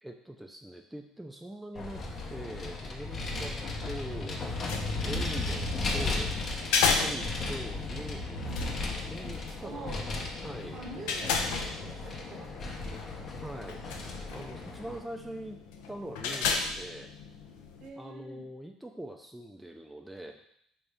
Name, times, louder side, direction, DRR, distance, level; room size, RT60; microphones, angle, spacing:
voice 1, 0.0-4.4 5.0-6.3 6.9-8.6 9.1-10.0 10.4-10.8 13.4-13.9 14.3-15.6 15.9-17.1 18.0-20.4, right 1 dB, 5° right, 3 dB, 0.3 m, -43 dB
Vehicle, 1.7-15.0, left 2 dB, 45° left, 0.7 m, -35 dB
sound 1, 4.5-17.9, left 5 dB, 80° left, 0.4 m, -35 dB
voice 2, 8.5-8.9 9.6-10.1 10.7-12.8 17.8-18.4, right 3 dB, 55° right, 1 dB, 0.8 m, -45 dB
3.5 x 2.7 x 3.4 m, 0.71 s
hypercardioid pair, 75°, 0 cm